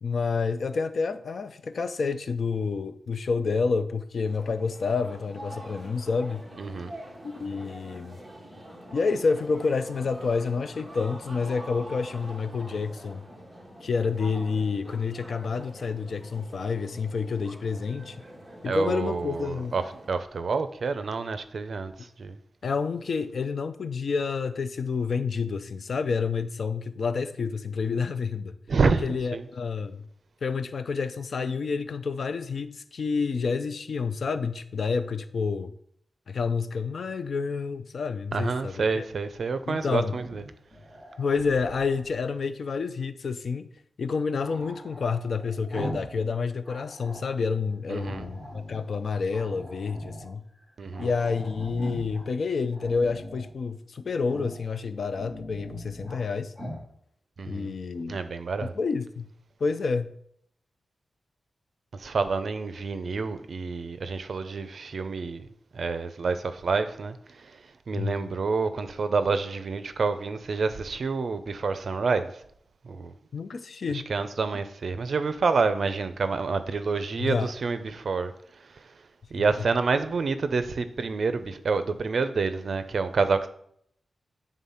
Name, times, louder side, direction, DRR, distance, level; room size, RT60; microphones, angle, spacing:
voice 1, 0.0-6.4 7.2-8.2 8.9-13.3 13.8-18.2 18.6-19.7 22.6-28.5 29.0-30.0 30.4-35.7 36.3-39.0 39.7-40.2 41.2-43.7 44.0-50.4 51.0-56.5 57.5-58.2 58.6-59.3 59.6-60.1 67.9-68.3 73.3-74.1 77.2-77.5, left 5 dB, 60° left, 0.5 m, -29 dB
sound 1, 4.2-20.1, right 1 dB, 10° right, 1.5 m, -45 dB
voice 2, 6.6-6.9 18.6-19.8 20.1-22.4 28.7-29.1 29.3-29.4 38.3-40.4 47.9-48.3 50.8-51.1 57.4-57.7 58.1-58.7 61.9-65.5 65.7-67.6 67.9-72.4 72.8-73.1 73.9-78.3 78.7-78.9 79.3-83.5, right 4 dB, 60° right, 0.6 m, -28 dB
Growling, 40.0-42.0 44.4-46.2 46.5-47.4 48.0-48.9 49.3-50.3 50.6-50.7 50.9-52.2 52.7-53.5 54.2-54.6 55.0-56.2 56.5-56.8, equal, 10° left, 2.7 m, -40 dB
9.2 x 3.7 x 5.6 m
wide cardioid pair, 135°, 0 cm